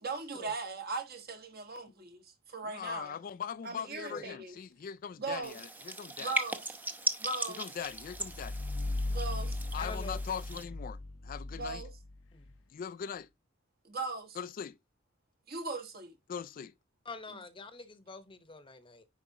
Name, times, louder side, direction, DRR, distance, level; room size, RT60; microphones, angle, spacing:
voice 1, 0.0-3.2 3.6-4.6 5.2-5.6 6.2-6.7 7.2-7.6 9.1-9.6 11.5-11.9 13.8-14.4 15.5-16.1, right 3 dB, 50° right, 1.6 m, -39 dB
voice 2, 2.6-6.3 7.6-8.6 9.7-11.8 12.7-13.3 14.4-14.8 16.3-16.7, left 7 dB, 45° left, 0.3 m, -41 dB
sound 1, 5.4-10.6, right 2 dB, 10° right, 0.7 m, -38 dB
sound 2, 7.9-12.6, left 2 dB, 65° left, 0.7 m, -37 dB
voice 3, 9.8-10.4 12.3-12.5 17.0-19.0, left 3 dB, 25° left, 0.9 m, -46 dB
9.9 x 4.9 x 2.8 m
head